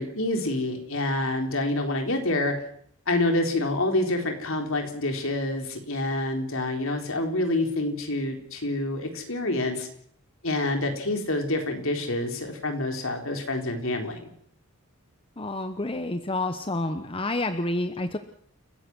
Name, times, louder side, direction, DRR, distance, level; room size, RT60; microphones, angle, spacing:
voice 1, 0.0-2.5 3.1-9.9 10.4-14.3, left 2 dB, 60° left, 4 dB, 4.0 m, -27 dB
voice 2, 15.4-18.2, left 2 dB, 25° left, 9 dB, 1.0 m, -29 dB
30.0 x 15.5 x 6.2 m, 0.63 s
head